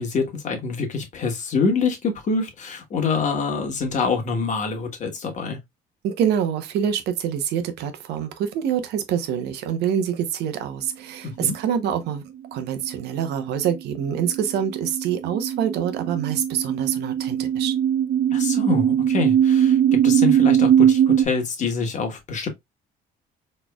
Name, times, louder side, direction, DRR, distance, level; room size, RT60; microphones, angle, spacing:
voice 1, 0.0-5.6 11.2-11.5 18.3-19.8 20.0-22.5, left 4 dB, 45° left, 1.4 m, -25 dB
voice 2, 6.0-12.2 12.5-17.7, right 8 dB, 80° right, 0.9 m, -26 dB
sound 1, 12.6-21.2, right 9 dB, 50° right, 0.5 m, -20 dB
4.2 x 3.2 x 2.3 m
cardioid pair, 110°, 17 cm